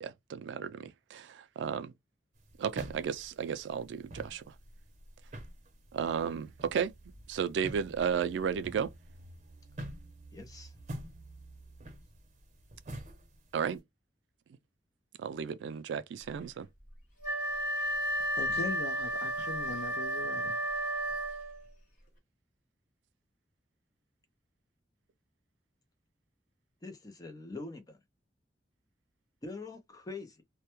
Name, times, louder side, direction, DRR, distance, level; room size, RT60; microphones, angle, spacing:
voice 1, 0.0-1.9 2.6-4.4 5.9-6.9 7.3-8.9 13.5-13.8 15.2-16.7, right 7 dB, 85° right, 0.3 m, -33 dB
sound 1, 2.4-13.8, right 1 dB, 45° right, 0.6 m, -47 dB
voice 2, 10.3-10.7 26.8-28.0 29.4-30.4, left 3 dB, 20° left, 0.5 m, -44 dB
Wind instrument woodwind instrument, 17.2-21.7, right 1 dB, 50° left, 1.0 m, -33 dB
voice 3, 18.4-20.6, left 3 dB, 70° left, 0.4 m, -40 dB
2.2 x 2.1 x 2.9 m
head